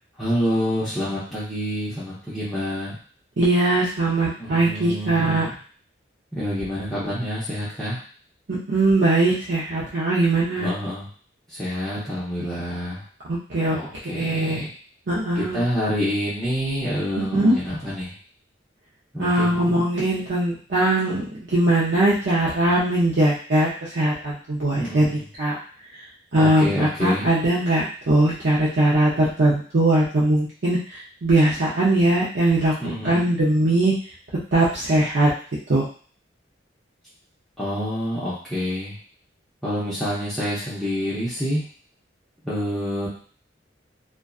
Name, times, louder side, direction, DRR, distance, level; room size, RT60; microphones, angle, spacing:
voice 1, 0.2-3.0 4.4-5.6 6.4-8.0 10.6-11.1 11.5-13.0 13.7-14.7 15.3-18.1 19.1-19.8 24.7-25.2 26.4-27.3 32.8-33.2 37.6-38.9 39.6-41.6 42.4-43.1, equal, ahead, -11 dB, 0.6 m, -27 dB
voice 2, 3.4-5.5 8.5-10.7 13.3-13.8 14.1-14.6 15.1-15.6 17.2-17.6 19.2-21.2 21.5-25.6 26.3-32.7 33.0-33.9 34.5-35.3 35.7-35.9, right 1 dB, 65° right, -7 dB, 0.5 m, -20 dB
2.5 x 2.3 x 2.3 m, 0.43 s
head